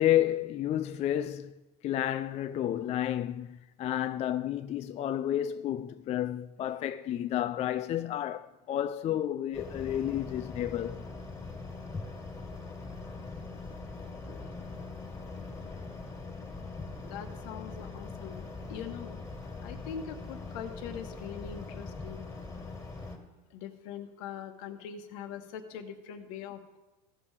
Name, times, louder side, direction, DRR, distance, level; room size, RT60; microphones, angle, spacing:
voice 1, 0.0-1.5 1.8-11.0 14.3-14.5, left 11 dB, 30° left, 0.3 m, -31 dB
sound 1, 9.5-23.2, left 3 dB, 15° left, 2.0 m, -42 dB
voice 2, 17.0-19.2 19.6-22.2 23.5-26.8, left 8 dB, 70° left, 1.1 m, -42 dB
15.5 x 5.6 x 4.8 m
supercardioid pair, 110°, 21 cm